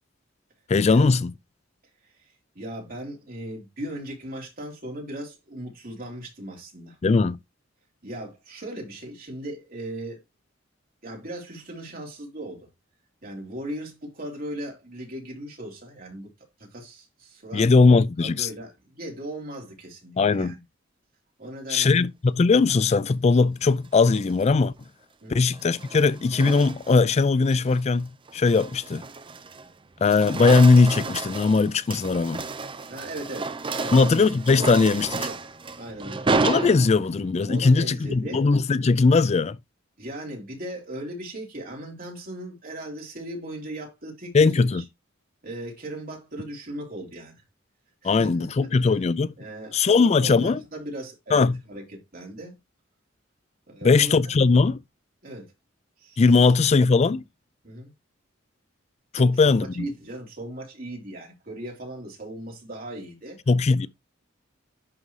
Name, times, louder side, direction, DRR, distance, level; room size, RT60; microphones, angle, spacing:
voice 1, 0.7-1.3 7.0-7.4 17.5-18.5 20.2-20.5 21.7-24.7 25.3-29.0 30.0-32.4 33.9-35.2 36.4-39.6 44.3-44.8 48.0-49.3 49.7-50.6 51.3-51.5 53.8-54.8 56.2-57.2 59.1-59.9 63.5-63.9, left 4 dB, 35° left, 0.4 m, -19 dB
voice 2, 2.0-7.0 8.0-10.2 11.0-12.7 13.2-16.3 16.6-17.9 18.2-20.6 21.4-22.0 25.2-25.4 32.9-34.3 34.6-35.4 35.8-36.3 37.5-38.5 40.0-44.8 45.4-47.3 48.0-49.0 49.4-52.6 53.7-54.4 55.2-55.5 56.0-56.6 57.6-57.9 59.2-63.4, right 1 dB, 50° right, 3.4 m, -38 dB
sound 1, 23.9-24.4 25.5-27.1 27.5-27.8 28.3-29.7 30.0-37.3, right 3 dB, 25° right, 0.6 m, -31 dB
10.5 x 3.8 x 3.2 m
head